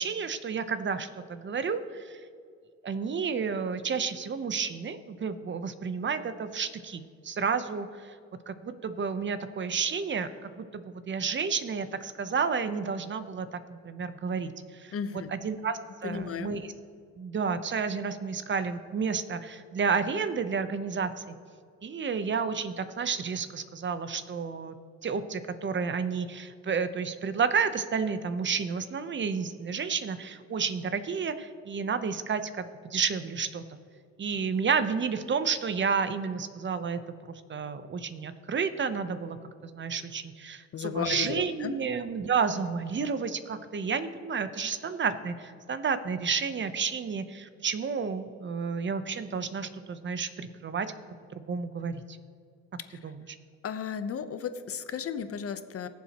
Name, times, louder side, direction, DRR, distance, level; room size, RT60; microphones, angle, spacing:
voice 1, 0.0-2.2 2.8-8.1 8.5-14.9 15.3-16.7 17.2-21.4 21.8-24.8 25.0-33.6 34.2-37.0 37.3-39.4 39.6-50.9 51.5-52.2 53.0-53.2, right 5 dB, 40° right, 11 dB, 0.8 m, -31 dB
voice 2, 14.9-15.3 16.0-16.5 40.7-41.7 52.9-53.0 53.6-55.9, left 7 dB, 50° left, 10 dB, 0.8 m, -34 dB
19.5 x 7.3 x 3.0 m, 2.2 s
cardioid pair, 90°, 30 cm